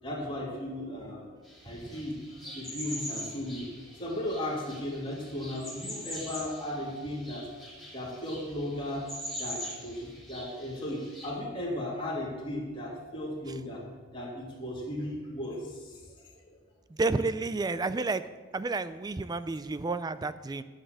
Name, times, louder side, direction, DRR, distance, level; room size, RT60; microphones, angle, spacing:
voice 1, 0.0-1.3 1.6-7.5 7.9-9.1 9.4-13.8 14.1-16.6, left 1 dB, 25° left, -4 dB, 2.7 m, -36 dB
sound 1, 1.4-11.3, equal, ahead, 3.2 m, -43 dB
voice 2, 16.9-18.2 18.5-20.6, right 3 dB, 20° right, 13 dB, 0.3 m, -30 dB
11.0 x 6.5 x 8.0 m, 1.4 s
head